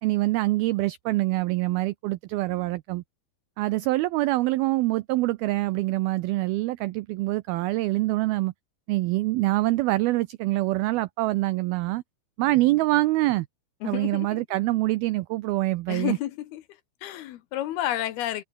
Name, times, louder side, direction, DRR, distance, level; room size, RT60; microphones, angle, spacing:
voice 1, 0.0-3.0 3.6-8.5 8.9-12.0 12.4-13.5 13.9-16.2, right 19 dB, 85° right, 2.1 m, -25 dB
voice 2, 13.8-14.4 15.9-16.6 17.0-18.4, left 13 dB, 70° left, 2.8 m, -30 dB
omnidirectional pair, 5.1 m